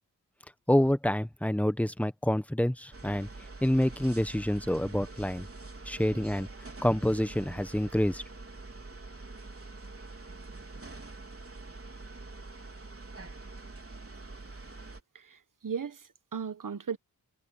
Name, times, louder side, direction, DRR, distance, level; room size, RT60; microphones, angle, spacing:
voice 1, 0.7-3.3 3.6-5.5 5.8-6.5 6.8-8.2, left 1 dB, 5° left, 1.2 m, -27 dB
sound 1, 2.9-15.0, right 3 dB, 35° right, 4.4 m, -45 dB
voice 2, 15.1-17.0, right 6 dB, 50° right, 1.3 m, -37 dB
wide cardioid pair, 75°, 40 cm